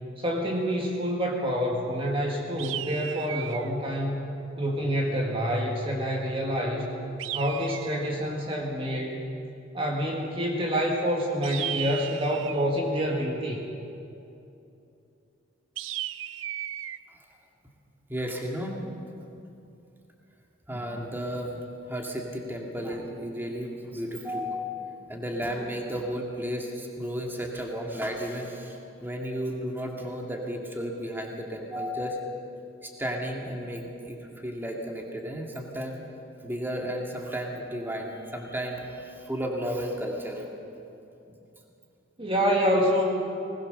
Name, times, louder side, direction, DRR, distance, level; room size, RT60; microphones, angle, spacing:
voice 1, 0.2-4.2 4.6-6.9 7.3-9.2 9.7-13.6 20.7-21.0 42.2-43.0, equal, 30° right, -1 dB, 2.0 m, -27 dB
sound 1, 2.6-3.7 7.2-8.2 11.4-12.7 15.8-17.0, right 12 dB, 70° right, 0.5 m, -35 dB
voice 2, 18.1-18.8 20.7-21.6 21.9-32.4 32.8-36.0 36.4-40.5, equal, 10° right, 0 dB, 2.2 m, -33 dB
20.5 x 19.0 x 6.8 m, 2.8 s
head